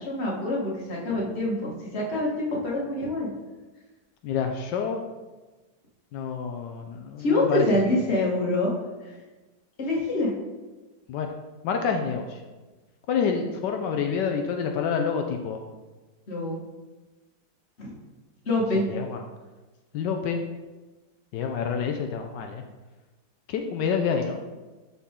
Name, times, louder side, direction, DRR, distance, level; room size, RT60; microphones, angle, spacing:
voice 1, 0.0-3.3 7.2-8.7 9.0-9.2 9.8-10.3 16.3-16.6 17.8-18.0 18.5-18.9, left 2 dB, 40° left, -3 dB, 1.8 m, -26 dB
voice 2, 4.2-5.0 6.1-8.0 11.1-11.3 11.6-12.4 13.1-15.6 18.9-19.2 19.9-20.4 21.3-22.6 23.5-24.4, left 6 dB, 85° left, 4 dB, 1.3 m, -28 dB
11.0 x 4.3 x 3.7 m, 1.2 s
omnidirectional pair, 1.8 m